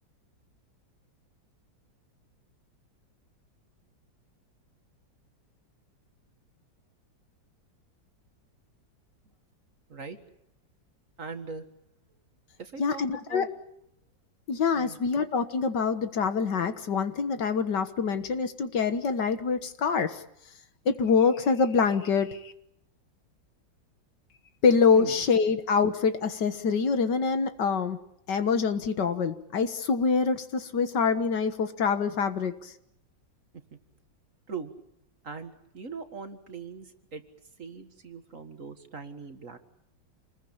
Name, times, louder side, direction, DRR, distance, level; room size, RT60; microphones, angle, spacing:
voice 1, 11.2-11.7 12.6-13.5 14.7-15.2 24.9-25.2 34.5-34.7 35.2-37.2 37.6-39.6, right 4 dB, 45° right, 8 dB, 2.0 m, -40 dB
voice 2, 12.8-13.5 14.5-20.2 20.9-22.5 24.6-28.0 28.3-32.7, left 5 dB, 65° left, 10 dB, 2.0 m, -25 dB
27.5 x 20.5 x 8.8 m, 0.74 s
omnidirectional pair, 2.0 m